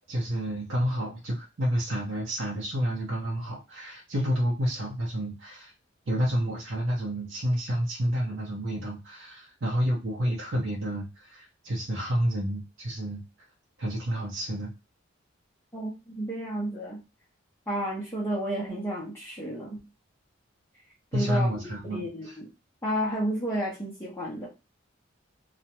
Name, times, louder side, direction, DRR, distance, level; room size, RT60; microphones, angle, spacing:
voice 1, 0.0-5.7 6.1-13.2 13.8-14.7 21.1-22.4, equal, 80° right, -3 dB, 0.7 m, -29 dB
voice 2, 15.7-17.0 17.7-19.8 21.1-21.5 21.8-22.5 22.8-24.5, equal, 10° left, -6 dB, 0.6 m, -31 dB
2.4 x 2.1 x 2.9 m, 0.26 s
head